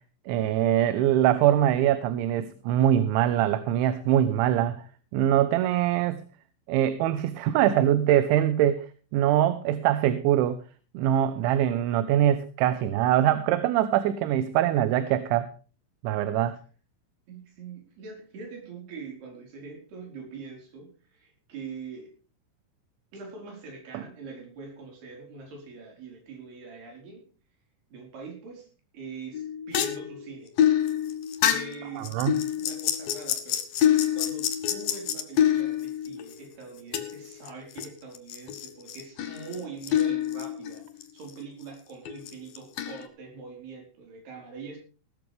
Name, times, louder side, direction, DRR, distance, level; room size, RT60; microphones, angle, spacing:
voice 1, 0.3-4.8 5.1-6.2 6.7-8.9 9.1-10.6 10.9-15.5 16.0-16.6 23.9-24.0 32.0-32.3, right 11 dB, 80° right, 12 dB, 3.2 m, -23 dB
voice 2, 17.3-22.2 23.1-27.3 27.9-28.7 28.9-30.6 31.4-33.7 34.1-44.8, right 4 dB, 55° right, 2 dB, 6.4 m, -43 dB
sound 1, 29.3-36.3 36.9-37.9 38.1-41.0 41.3-41.4 42.1-43.1, left 10 dB, 60° left, 2.7 m, -27 dB
17.5 x 13.5 x 3.4 m, 0.37 s
omnidirectional pair, 5.6 m